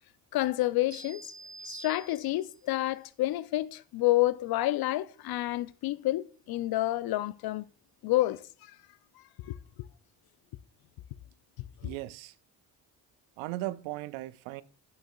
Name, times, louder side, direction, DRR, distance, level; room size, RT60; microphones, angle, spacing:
voice 1, 0.3-1.2 1.7-7.6 8.0-8.4 9.5-9.9 11.8-11.9, left 16 dB, 50° left, 0.5 m, -29 dB
sound 1, 0.9-2.6, right 4 dB, 35° right, 1.7 m, -47 dB
voice 2, 11.8-12.3 13.4-14.6, right 17 dB, 70° right, 0.5 m, -37 dB
8.8 x 6.3 x 2.3 m
hypercardioid pair, 45°, 48 cm